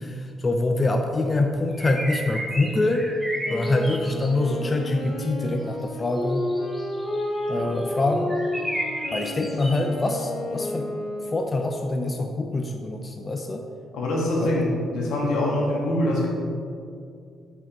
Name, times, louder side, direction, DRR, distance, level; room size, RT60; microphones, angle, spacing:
voice 1, 0.0-3.1 3.5-6.5 7.5-8.3 9.1-10.9 11.3-13.6 14.4-14.5, left 2 dB, 30° left, 4 dB, 0.4 m, -25 dB
sound 1, 1.7-4.5 6.2-7.9 8.2-10.1, equal, ahead, 1.3 m, -33 dB
Wind instrument woodwind instrument, 3.4-11.7, left 1 dB, 65° left, 1.2 m, -31 dB
voice 2, 13.9-16.3, left 1 dB, 85° left, -2 dB, 1.4 m, -24 dB
5.6 x 5.1 x 4.0 m, 2.4 s
cardioid pair, 90°, 0 cm